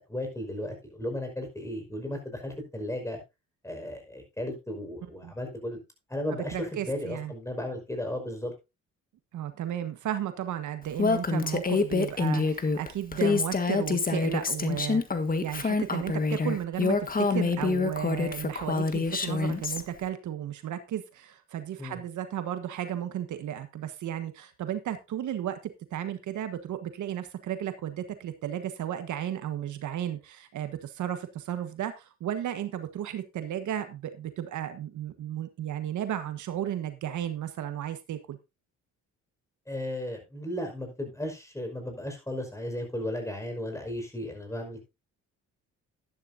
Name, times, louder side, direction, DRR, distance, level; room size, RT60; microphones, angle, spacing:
voice 1, 0.0-3.2 3.6-5.8 6.1-8.5 21.8-22.0 39.7-44.9, left 1 dB, 10° left, 4 dB, 5.4 m, -35 dB
voice 2, 6.3-7.3 9.3-15.0 15.4-25.6 25.9-38.4, right 10 dB, 75° right, 9 dB, 1.4 m, -34 dB
Female speech woman speaking, 11.0-19.8, left 4 dB, 30° left, 1.6 m, -26 dB
12.5 x 11.0 x 2.7 m, 0.25 s
cardioid pair, 90°, 30 cm